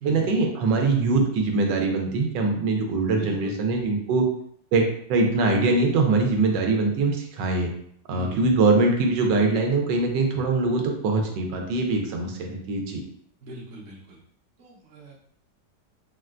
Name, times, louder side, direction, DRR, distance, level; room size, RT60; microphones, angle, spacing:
voice 1, 0.0-4.2 4.7-7.7 8.1-13.0, right 3 dB, 85° right, 2 dB, 1.3 m, -23 dB
voice 2, 3.1-3.6 8.1-8.4 13.4-14.2 14.6-15.1, right 2 dB, 55° right, -3 dB, 0.8 m, -39 dB
3.8 x 2.1 x 2.4 m, 0.68 s
omnidirectional pair, 1.9 m